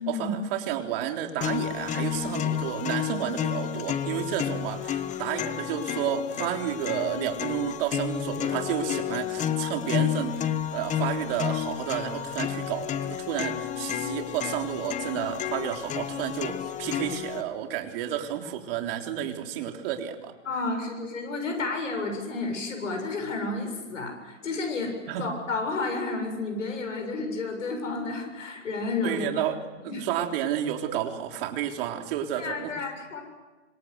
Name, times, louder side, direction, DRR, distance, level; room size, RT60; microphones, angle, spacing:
voice 1, 0.0-20.3 25.1-25.3 29.0-29.6 29.8-32.7, right 10 dB, 50° right, 4 dB, 3.7 m, -31 dB
sound 1, 1.4-17.4, left 10 dB, 20° left, 1.1 m, -31 dB
voice 2, 20.5-29.2 29.9-30.0 32.4-33.2, left 3 dB, 90° left, 4 dB, 7.2 m, -31 dB
26.5 x 26.0 x 8.0 m, 1.2 s
hypercardioid pair, 135°, 37 cm